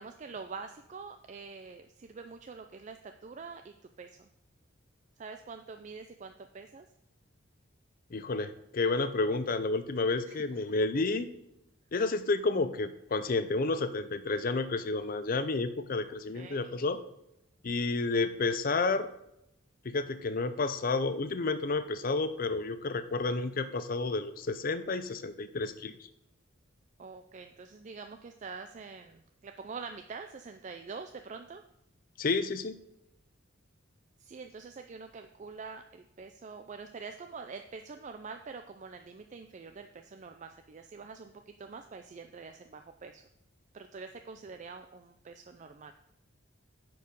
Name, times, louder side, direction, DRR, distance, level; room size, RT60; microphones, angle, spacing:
voice 1, 0.0-4.3 5.2-6.9 10.3-10.4 16.3-16.7 27.0-31.6 34.2-43.2 43.7-45.9, right 4 dB, 35° right, 7 dB, 0.4 m, -45 dB
voice 2, 8.1-11.3 11.9-17.0 17.6-19.1 19.8-25.9 32.2-32.8, left 3 dB, 45° left, 11 dB, 0.5 m, -30 dB
9.5 x 4.7 x 5.2 m, 0.83 s
head